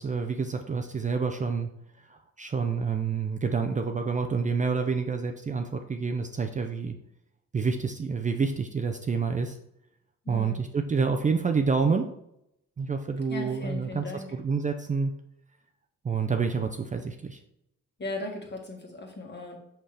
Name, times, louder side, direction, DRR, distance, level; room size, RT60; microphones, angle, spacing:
voice 1, 0.0-1.7 2.1-6.9 7.5-9.6 10.3-12.1 12.8-15.1 16.0-17.4, right 5 dB, 25° right, 5 dB, 0.5 m, -28 dB
voice 2, 10.2-10.6 13.3-14.3 18.0-19.6, left 2 dB, 35° left, 1 dB, 1.7 m, -37 dB
5.8 x 5.5 x 3.3 m, 0.79 s
cardioid pair, 90°, 30 cm